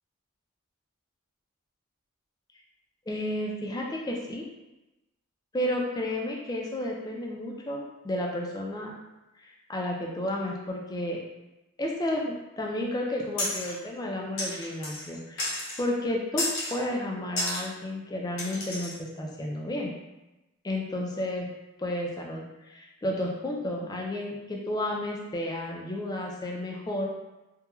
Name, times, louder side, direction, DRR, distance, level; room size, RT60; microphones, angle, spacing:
voice 1, 3.1-4.4 5.5-8.9 9.4-11.2 11.8-19.9 20.6-21.5 21.8-27.1, left 1 dB, 20° left, -1 dB, 0.3 m, -32 dB
sound 1, 13.4-13.8 14.4-15.1 15.4-15.8 16.4-16.8 17.4-17.6 18.4-19.0, left 1 dB, 60° left, 0.6 m, -32 dB
3.0 x 2.2 x 2.3 m, 1.0 s
head